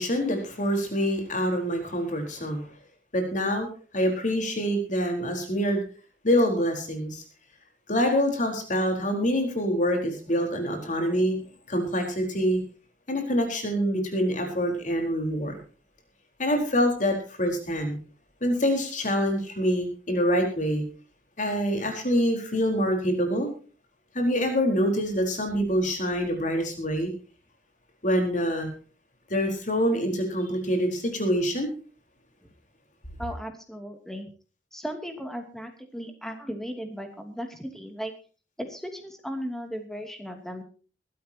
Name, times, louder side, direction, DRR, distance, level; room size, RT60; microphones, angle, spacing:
voice 1, 0.0-2.6 3.1-3.7 3.9-5.8 6.2-7.2 7.9-11.4 11.7-12.6 13.1-15.6 16.4-18.0 18.4-20.8 21.4-23.5 24.1-27.1 28.0-28.7 29.3-31.7, equal, 45° left, 3 dB, 4.3 m, -25 dB
voice 2, 33.2-34.3 34.7-38.1 38.6-40.6, equal, 5° left, 5 dB, 2.6 m, -36 dB
22.5 x 13.0 x 2.9 m, 0.37 s
head